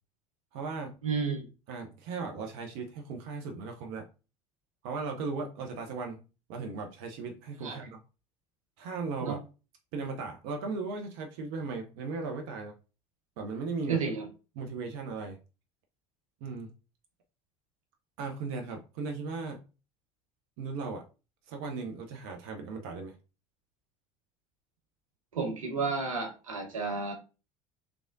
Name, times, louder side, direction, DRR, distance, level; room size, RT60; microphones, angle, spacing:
voice 1, 0.5-1.0 1.7-4.1 4.8-8.0 8.8-9.4 9.9-12.7 13.4-14.0 14.6-15.4 16.4-16.7 18.2-19.6 20.6-21.0 21.5-23.1, right 4 dB, 60° right, 3 dB, 0.7 m, -37 dB
voice 2, 1.0-1.5 7.6-7.8 9.2-9.4 13.9-14.3 25.3-27.1, right 4 dB, 85° right, 3 dB, 1.0 m, -31 dB
3.4 x 3.4 x 2.6 m, 0.32 s
hypercardioid pair, 75°, 17 cm